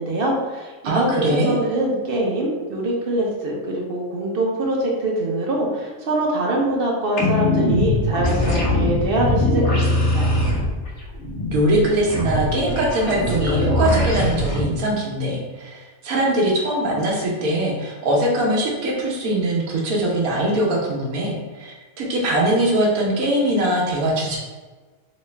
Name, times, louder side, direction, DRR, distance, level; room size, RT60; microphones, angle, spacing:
voice 1, 0.0-10.4, right 1 dB, 55° right, -1 dB, 0.7 m, -24 dB
voice 2, 0.8-1.5 11.5-24.4, right 1 dB, 90° right, -3 dB, 1.2 m, -21 dB
sound 1, 7.2-14.6, left 1 dB, 60° left, 1.0 m, -21 dB
3.1 x 2.8 x 3.2 m, 1.3 s
omnidirectional pair, 1.5 m